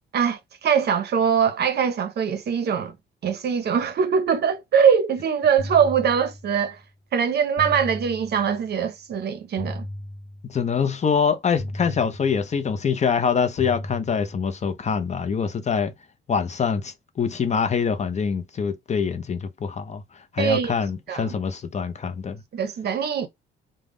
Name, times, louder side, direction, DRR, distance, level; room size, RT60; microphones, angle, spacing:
voice 1, 0.1-2.9 3.2-6.8 7.1-9.9 20.4-20.7 21.1-21.3 22.5-23.3, right 7 dB, 55° right, 0.6 m, -22 dB
sound 1, 5.6-6.8 7.6-8.8 9.6-10.8 11.6-12.8 13.6-14.8, left 1 dB, 70° left, 0.8 m, -36 dB
voice 2, 10.4-15.9 16.3-20.0 20.3-22.4, left 6 dB, 35° left, 0.5 m, -24 dB
2.4 x 2.1 x 3.5 m
cardioid pair, 90°, 20 cm